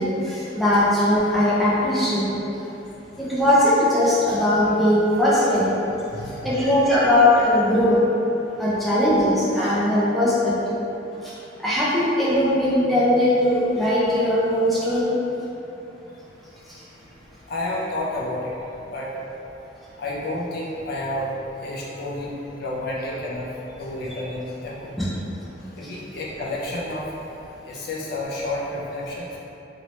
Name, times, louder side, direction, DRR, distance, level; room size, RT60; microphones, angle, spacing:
voice 1, 0.0-2.2 3.2-5.7 6.4-8.0 8.6-10.8 11.6-15.1 25.0-25.1, left 1 dB, ahead, -10 dB, 0.5 m, -19 dB
voice 2, 6.1-6.5 17.5-18.5 18.9-19.1 20.0-21.3 21.6-24.9 25.6-27.3 27.6-29.3, left 1 dB, 55° left, -5 dB, 0.4 m, -30 dB
2.8 x 2.8 x 3.1 m, 3.0 s
head